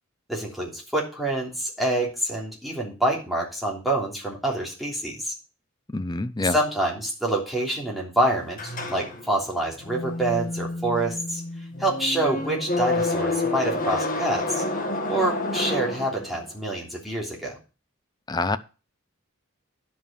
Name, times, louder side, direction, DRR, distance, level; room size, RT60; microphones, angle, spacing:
voice 1, 0.3-5.3 6.4-11.4 11.8-14.6 15.1-17.6, right 1 dB, ahead, 3.2 m, -26 dB
voice 2, 5.9-6.6 18.3-18.6, left 3 dB, 20° left, 0.5 m, -26 dB
sound 1, 8.6-16.6, left 2 dB, 40° left, 1.9 m, -29 dB
10.5 x 5.7 x 7.0 m
head